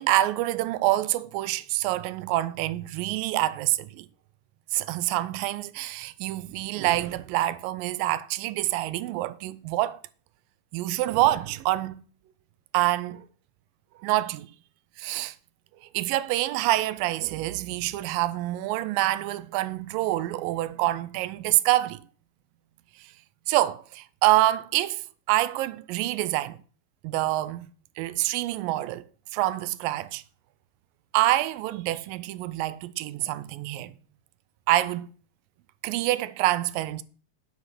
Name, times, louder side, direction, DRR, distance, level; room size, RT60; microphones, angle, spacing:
voice 1, 0.0-4.1 4.7-10.0 10.7-12.0 12.7-13.3 14.0-14.5 15.0-15.3 15.9-22.1 23.5-25.0 25.3-26.6 27.0-27.7 28.0-29.0 29.3-30.2 31.1-33.9 34.7-35.1 35.8-37.0, right 16 dB, 90° right, 2.3 m, -26 dB
10.0 x 5.6 x 5.9 m
omnidirectional pair, 3.9 m